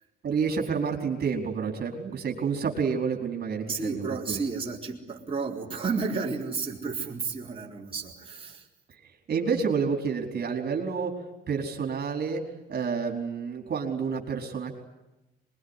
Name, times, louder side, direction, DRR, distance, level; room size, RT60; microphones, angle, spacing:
voice 1, 0.2-4.4 9.3-11.1 11.5-12.4 12.7-14.8, right 5 dB, 50° right, 3 dB, 4.6 m, -29 dB
voice 2, 3.7-8.7, right 4 dB, 25° right, -2 dB, 4.2 m, -32 dB
23.0 x 22.5 x 9.9 m, 0.95 s
cardioid pair, 90°, 20 cm